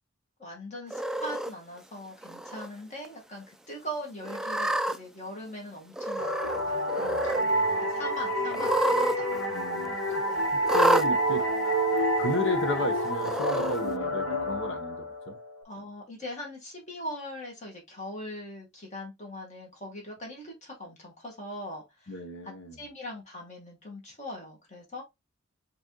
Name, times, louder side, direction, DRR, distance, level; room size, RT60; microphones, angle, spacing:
voice 1, 0.4-9.3 10.3-10.4 15.6-22.2 22.4-25.0, left 1 dB, 35° left, 2.1 m, -41 dB
Cat, 0.9-1.5 2.2-2.7 3.0-3.1 4.2-5.0 5.9-6.6 6.9-7.4 8.5-9.2 9.4-9.5 10.7-11.1 12.0-12.1 13.2-13.8, right 1 dB, 5° right, 0.3 m, -28 dB
sound 1, 6.2-15.6, right 1 dB, 85° left, 1.3 m, -29 dB
voice 2, 9.5-10.2 10.7-11.4 12.2-15.4 22.1-22.8, left 1 dB, 65° left, 1.2 m, -33 dB
5.0 x 3.4 x 3.1 m
head